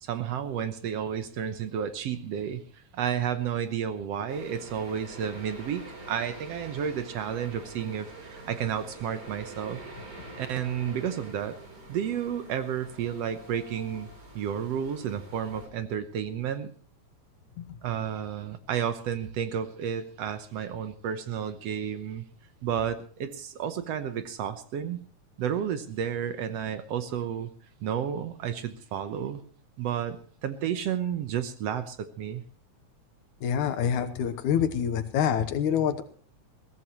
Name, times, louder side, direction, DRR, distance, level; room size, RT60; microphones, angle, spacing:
voice 1, 0.0-2.6 2.9-9.8 10.4-11.6 11.9-14.1 14.4-16.7 17.8-22.2 22.6-25.0 25.4-27.5 27.8-29.4 29.8-32.4, right 8 dB, 65° right, 10 dB, 1.9 m, -31 dB
sound 1, 4.3-15.7, right 2 dB, 35° right, 4.3 m, -45 dB
voice 2, 33.4-36.0, left 8 dB, 85° left, 9 dB, 2.5 m, -26 dB
21.5 x 16.0 x 3.1 m, 0.42 s
omnidirectional pair, 3.4 m